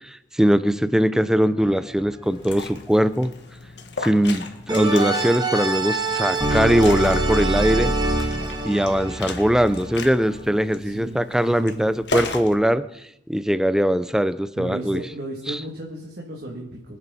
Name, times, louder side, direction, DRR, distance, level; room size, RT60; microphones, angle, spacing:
voice 1, 0.1-3.3 4.0-7.9 8.6-12.8 13.3-15.0 15.5-15.6, equal, 5° right, 13 dB, 0.5 m, -21 dB
sound 1, 1.6-2.1 4.7-10.4, right 2 dB, 25° right, 1.7 m, -25 dB
Liquid, 2.2-12.5, left 3 dB, 70° left, 1.8 m, -36 dB
voice 2, 10.8-11.2 11.5-11.9 14.6-17.0, right 1 dB, 60° right, -3 dB, 2.6 m, -34 dB
25.0 x 9.7 x 4.2 m, 0.82 s
head